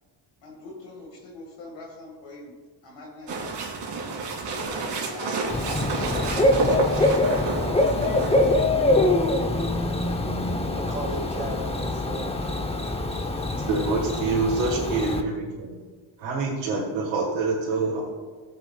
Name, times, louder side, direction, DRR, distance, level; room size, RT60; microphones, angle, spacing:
voice 1, 0.4-2.5 2.8-3.8 5.1-7.2 13.1-13.9, left 3 dB, 75° left, -3 dB, 2.0 m, -44 dB
sound 1, 3.3-8.6, right 3 dB, 65° right, 2.4 m, -30 dB
Bird / Cricket, 5.5-15.2, left 2 dB, 15° left, 0.8 m, -24 dB
voice 2, 10.3-12.5, right 2 dB, 15° right, 2 dB, 1.6 m, -36 dB
voice 3, 13.7-15.8 16.2-18.1, right 3 dB, 90° right, -4 dB, 1.8 m, -26 dB
16.0 x 7.7 x 2.3 m, 1.5 s
cardioid pair, 90°, 45 cm